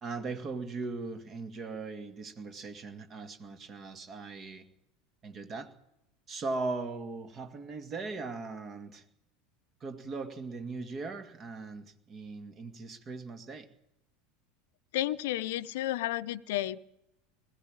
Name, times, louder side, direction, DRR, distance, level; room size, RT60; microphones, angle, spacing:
voice 1, 0.0-4.7 5.2-5.7 6.3-9.0 9.8-13.7, right 3 dB, 35° right, 9 dB, 2.1 m, -39 dB
voice 2, 14.9-16.8, left 14 dB, 65° left, 14 dB, 0.7 m, -32 dB
20.5 x 15.0 x 9.0 m, 0.87 s
figure-of-eight pair, 75°, 0 cm